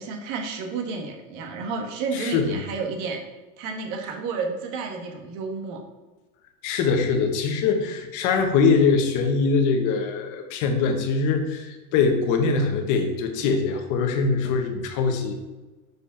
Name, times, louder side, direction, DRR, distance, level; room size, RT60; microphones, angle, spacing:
voice 1, 0.0-3.2 3.6-5.8, right 4 dB, 45° right, 3 dB, 1.5 m, -31 dB
voice 2, 2.1-2.6 6.6-15.3, left 5 dB, 45° left, 5 dB, 1.3 m, -23 dB
6.8 x 5.0 x 5.8 m, 1.1 s
supercardioid pair, 155°, 44 cm